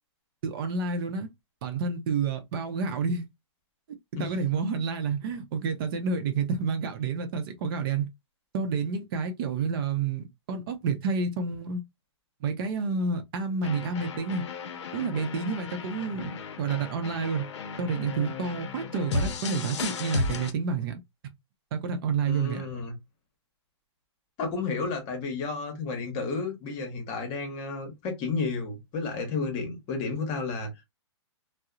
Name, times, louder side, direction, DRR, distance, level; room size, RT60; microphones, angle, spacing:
voice 1, 0.4-1.3 1.6-3.2 4.1-8.1 8.5-11.8 12.4-14.4 14.9-17.4 17.8-21.0 21.7-22.6, right 5 dB, 50° right, 0.6 m, -29 dB
sound 1, 13.6-20.5, left 4 dB, 65° left, 0.6 m, -35 dB
voice 2, 22.3-22.9 24.4-30.7, left 4 dB, 35° left, 0.9 m, -32 dB
2.6 x 2.0 x 2.3 m
hypercardioid pair, 135°, 16 cm